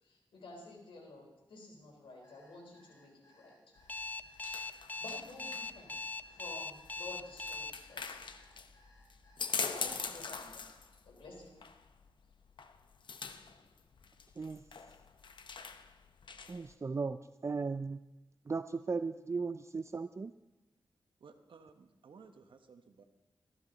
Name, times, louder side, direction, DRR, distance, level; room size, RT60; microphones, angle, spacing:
voice 1, 0.0-3.6 5.0-5.9 6.3-8.2 9.6-10.7 11.1-11.5, left 2 dB, 85° left, 4.0 m, -51 dB
Alarm, 2.2-10.0, left 1 dB, 40° left, 6.0 m, -65 dB
sound 1, 3.8-16.7, left 5 dB, 65° left, 0.8 m, -44 dB
Alarm 2, 3.9-7.7, left 3 dB, 20° left, 0.6 m, -40 dB
voice 2, 16.5-18.0 18.5-20.3, right 4 dB, 35° right, 0.4 m, -37 dB
voice 3, 21.2-23.0, right 5 dB, 75° right, 1.2 m, -57 dB
14.5 x 13.0 x 4.0 m
cardioid pair, 70°, 9 cm